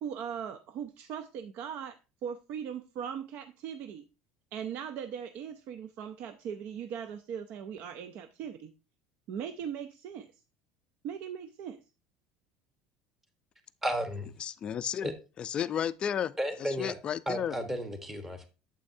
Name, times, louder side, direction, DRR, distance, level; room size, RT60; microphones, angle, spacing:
voice 1, 0.0-4.1 4.5-8.7 9.3-10.3 11.0-11.8, right 8 dB, 55° right, 0.5 m, -39 dB
voice 2, 13.8-14.3 15.0-15.1 16.4-17.0 17.3-18.5, equal, 10° right, 1.2 m, -33 dB
voice 3, 14.4-15.1 15.4-16.3 16.6-17.6, left 9 dB, 30° left, 0.4 m, -33 dB
8.7 x 7.5 x 2.7 m
cardioid pair, 155°, 3 cm